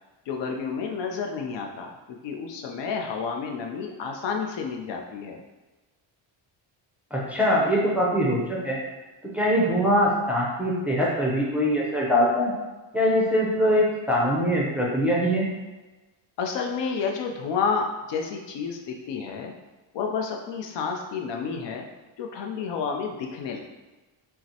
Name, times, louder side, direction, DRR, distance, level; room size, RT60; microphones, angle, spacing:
voice 1, 0.3-5.4 16.4-19.5 19.9-21.9 22.2-23.6, left 5 dB, 65° left, 2 dB, 0.6 m, -30 dB
voice 2, 7.1-8.8 9.3-12.5 12.9-15.5, equal, 5° right, -5 dB, 0.5 m, -22 dB
5.6 x 2.0 x 2.8 m, 1.2 s
cardioid pair, 165°, 48 cm